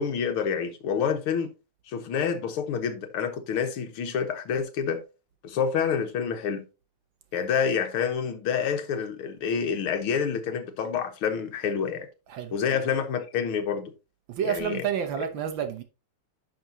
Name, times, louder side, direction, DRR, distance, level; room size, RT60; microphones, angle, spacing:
voice 1, 0.0-1.5 1.9-5.0 5.4-6.7 7.3-12.1 12.5-13.9 14.4-14.8, left 7 dB, 80° left, 2.0 m, -28 dB
voice 2, 12.3-12.8 14.3-15.8, right 9 dB, 70° right, 1.6 m, -30 dB
10.5 x 6.2 x 2.8 m
omnidirectional pair, 2.4 m